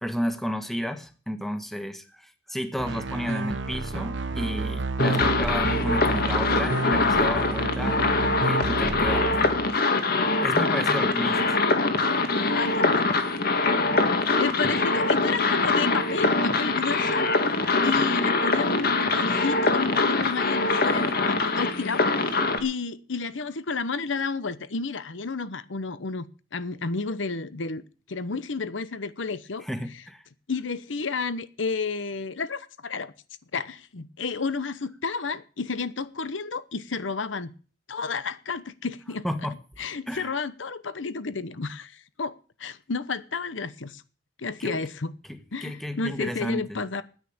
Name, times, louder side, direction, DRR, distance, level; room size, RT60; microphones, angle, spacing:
voice 1, 0.0-8.0 8.4-9.6 10.4-11.5 17.8-17.9 29.6-30.2 39.2-39.5 40.1-40.3 44.6-44.8 45.3-46.8, equal, ahead, 1.4 m, -32 dB
sound 1, 2.8-9.8, right 3 dB, 70° right, 1.1 m, -30 dB
sound 2, 5.0-22.6, left 3 dB, 55° left, 1.9 m, -23 dB
voice 2, 12.3-13.0 14.4-27.8 28.1-29.6 30.5-33.1 33.5-37.5 37.9-39.2 39.8-44.0 44.4-45.1 45.5-47.0, left 4 dB, 80° left, 0.9 m, -31 dB
10.0 x 9.4 x 8.7 m
head